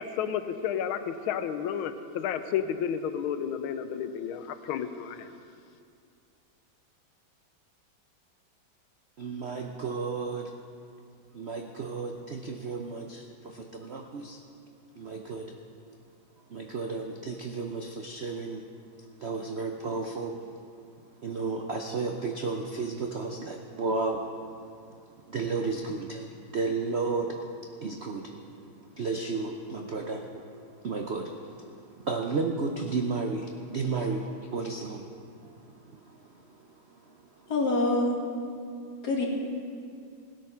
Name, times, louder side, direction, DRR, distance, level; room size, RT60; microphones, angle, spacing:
voice 1, 0.0-5.3, left 8 dB, 90° left, 10 dB, 1.5 m, -31 dB
voice 2, 9.2-10.5 11.3-14.4 15.0-15.6 16.4-18.7 19.2-20.4 21.2-24.6 24.9-25.0 25.3-37.5, right 4 dB, 80° right, 3 dB, 0.5 m, -33 dB
voice 3, 37.5-38.2 39.0-39.3, left 2 dB, 50° left, -2 dB, 2.4 m, -25 dB
17.0 x 8.5 x 5.7 m, 2.4 s
omnidirectional pair, 2.2 m